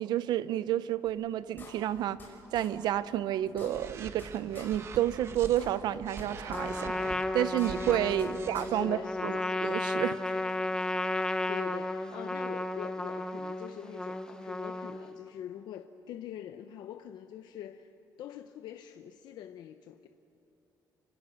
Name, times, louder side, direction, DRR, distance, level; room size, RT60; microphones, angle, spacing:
voice 1, 0.0-2.2 2.5-9.0 9.2-10.5, right 12 dB, 80° right, 0.7 m, -30 dB
sound 1, 1.1-1.2 1.6-2.3 2.5-2.7 3.1-3.2 3.4-4.3 4.5-4.7 5.1-5.2 5.4-6.2 6.5-6.6 7.1-7.2 7.4-8.3 8.5-8.7, left 5 dB, 30° left, 6.0 m, -49 dB
sound 2, 3.7-5.6 6.0-8.7, right 5 dB, 40° right, 1.3 m, -44 dB
Trumpet, 6.5-15.2, left 2 dB, 10° left, 0.8 m, -33 dB
voice 2, 8.4-9.5 11.1-17.9 18.2-20.1, left 10 dB, 75° left, 0.8 m, -44 dB
30.0 x 25.5 x 6.4 m
cardioid pair, 165°, 7 cm